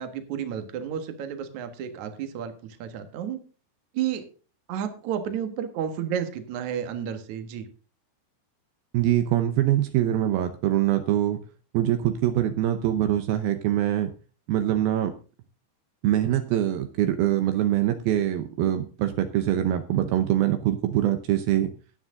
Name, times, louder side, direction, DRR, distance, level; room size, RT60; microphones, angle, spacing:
voice 1, 0.0-3.4 3.9-4.2 4.7-7.7, right 9 dB, 65° right, 8 dB, 1.9 m, -31 dB
voice 2, 8.9-11.4 11.7-14.1 14.5-15.1 16.0-21.7, right 12 dB, 90° right, 8 dB, 2.1 m, -24 dB
13.5 x 9.2 x 3.7 m, 0.36 s
omnidirectional pair, 5.5 m